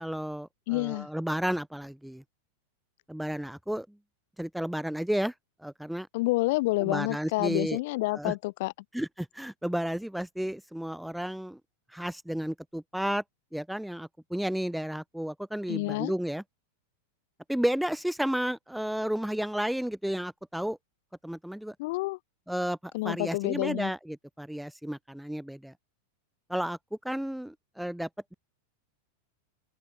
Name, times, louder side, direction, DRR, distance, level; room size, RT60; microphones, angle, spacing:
voice 1, 0.0-2.2 3.1-3.9 4.4-5.3 5.6-6.1 6.8-7.8 8.1-8.3 8.9-11.6 11.9-13.2 13.5-16.4 17.5-20.8 21.2-21.7 22.5-25.7 26.5-26.8 27.0-28.3, equal, ahead, 1.2 m, -32 dB
voice 2, 0.7-1.1 6.1-8.7 15.7-16.1 21.8-22.2 22.9-23.9, left 22 dB, 50° left, 0.3 m, -29 dB
figure-of-eight pair, 90°, 0 cm